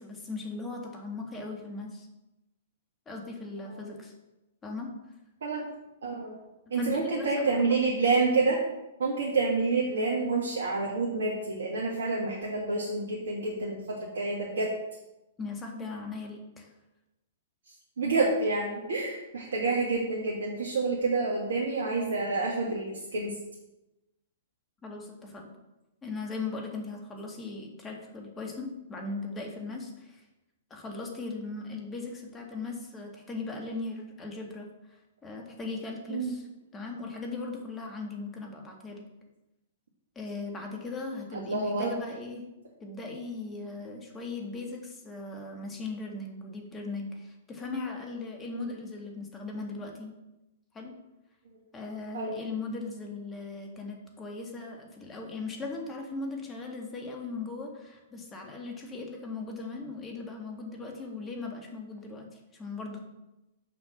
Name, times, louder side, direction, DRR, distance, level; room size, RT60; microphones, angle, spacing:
voice 1, 0.0-2.1 3.1-4.1 4.6-4.9 6.7-7.9 15.4-16.7 24.8-25.5 26.0-30.2 30.7-36.4 36.7-39.1 40.2-42.5 42.8-50.2 50.7-51.0 51.7-63.0, left 3 dB, 15° left, 1 dB, 1.8 m, -38 dB
voice 2, 6.0-6.3 6.7-8.6 9.0-14.7 18.0-23.3 36.1-36.3 41.3-41.9 48.6-48.7 52.1-52.3, right 3 dB, 70° right, -3 dB, 1.5 m, -28 dB
6.6 x 5.0 x 6.3 m, 0.96 s
figure-of-eight pair, 115°, 0 cm